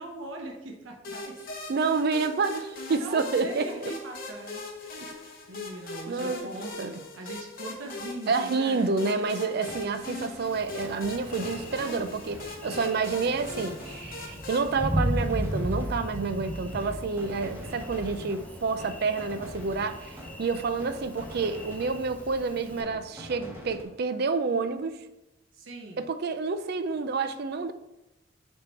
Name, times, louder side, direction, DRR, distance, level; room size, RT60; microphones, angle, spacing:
voice 1, 0.0-1.4 1.8-2.6 2.9-5.2 5.5-9.3 25.5-26.0, right 1 dB, 75° right, 0.8 m, -41 dB
sound 1, 1.0-14.8, left 2 dB, 50° left, 1.0 m, -40 dB
voice 2, 1.7-3.9 5.0-5.1 6.1-6.4 6.8-7.0 8.3-25.0 26.0-27.7, right 4 dB, 55° right, 0.4 m, -29 dB
sound 2, 9.6-23.8, equal, 10° right, 1.0 m, -45 dB
Thunder, 10.4-22.8, equal, 10° left, 0.7 m, -36 dB
6.7 x 3.6 x 4.4 m
head